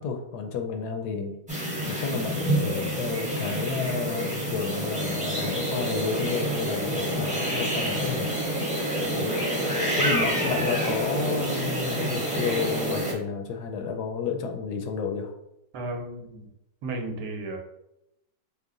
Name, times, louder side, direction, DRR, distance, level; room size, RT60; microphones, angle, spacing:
voice 1, 0.0-1.4 1.9-8.3 9.2-9.3 9.9-15.3, left 5 dB, 75° left, 5 dB, 1.1 m, -31 dB
sound 1, 1.5-13.1, right 1 dB, 5° right, 0.7 m, -28 dB
voice 2, 15.7-16.5 16.8-17.6, right 2 dB, 75° right, 3 dB, 1.3 m, -34 dB
5.4 x 2.1 x 3.7 m, 0.83 s
omnidirectional pair, 1.9 m